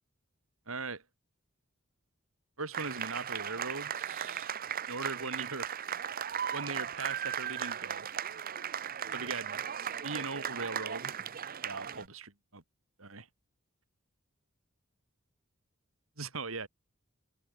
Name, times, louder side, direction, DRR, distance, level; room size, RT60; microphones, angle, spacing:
voice 1, 0.7-1.0 2.6-4.5 4.9-5.7 6.5-8.1 9.1-9.6 10.0-11.1 11.6-12.6 13.0-13.3 16.2-16.7, right 3 dB, 85° right, 3.8 m, -39 dB
sound 1, 2.7-12.1, right 8 dB, 45° right, 0.8 m, -37 dB
open air
head